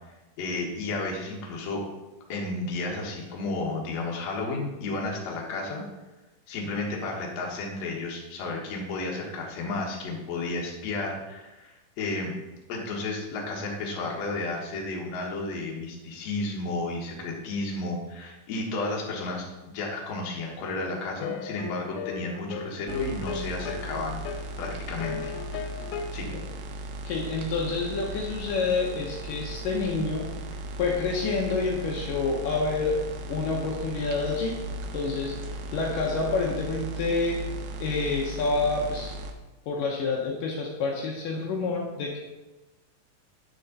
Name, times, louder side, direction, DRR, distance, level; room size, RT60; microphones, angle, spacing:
voice 1, 0.4-1.9 2.3-5.8 6.5-12.3 12.7-24.2 24.6-25.3 26.1-26.4, left 2 dB, 55° left, -2 dB, 2.3 m, -32 dB
sound 1, 21.2-26.1, left 7 dB, 90° left, 2.4 m, -37 dB
sound 2, 22.9-39.3, right 1 dB, 80° right, 2.3 m, -37 dB
voice 2, 27.0-30.3 30.8-33.0 33.3-34.5 34.9-37.4 37.8-39.2 39.7-42.2, left 4 dB, 70° left, -2 dB, 2.4 m, -28 dB
9.8 x 6.4 x 4.0 m, 1.1 s
omnidirectional pair, 4.2 m